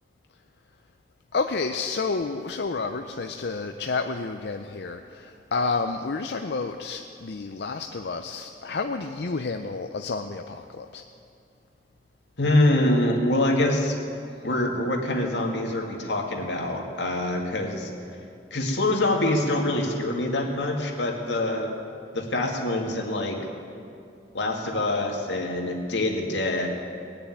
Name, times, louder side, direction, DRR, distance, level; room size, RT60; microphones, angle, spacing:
voice 1, 1.3-11.0, left 4 dB, 65° left, 6 dB, 0.6 m, -30 dB
voice 2, 12.4-14.0 14.4-17.9 18.5-21.8 22.1-23.4 24.3-26.7, left 1 dB, 90° left, 1 dB, 2.1 m, -25 dB
19.5 x 6.9 x 9.3 m, 2.5 s
head